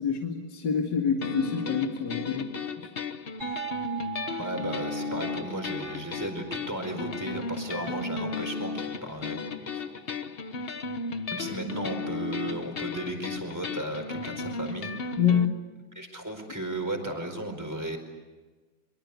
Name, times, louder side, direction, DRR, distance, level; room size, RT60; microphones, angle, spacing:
voice 1, 0.0-2.9 15.2-15.5, left 7 dB, 65° left, 2 dB, 2.6 m, -27 dB
funk to hunk, 1.2-15.5, left 4 dB, 40° left, 1.0 m, -35 dB
sound 1, 3.4-8.9, right 14 dB, 35° right, 4.7 m, -42 dB
voice 2, 4.4-10.0 11.3-15.2 15.9-18.0, right 1 dB, 10° right, 5 dB, 4.5 m, -35 dB
24.5 x 24.5 x 8.3 m, 1.3 s
omnidirectional pair, 2.1 m